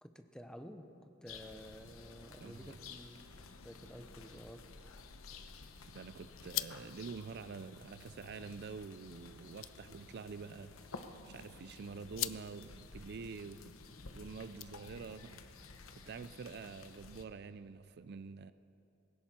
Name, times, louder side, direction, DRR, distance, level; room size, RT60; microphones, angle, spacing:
voice 1, 0.0-3.3 3.6-4.7, equal, 5° left, 7 dB, 0.7 m, -52 dB
sound 1, 1.3-17.2, left 4 dB, 85° left, 1.0 m, -53 dB
voice 2, 2.4-3.0 5.9-13.6 14.1-15.4 15.9-18.5, right 5 dB, 50° right, 14 dB, 0.4 m, -47 dB
sound 2, 4.9-15.2, left 16 dB, 65° left, 0.4 m, -48 dB
19.5 x 17.0 x 4.3 m, 2.8 s
head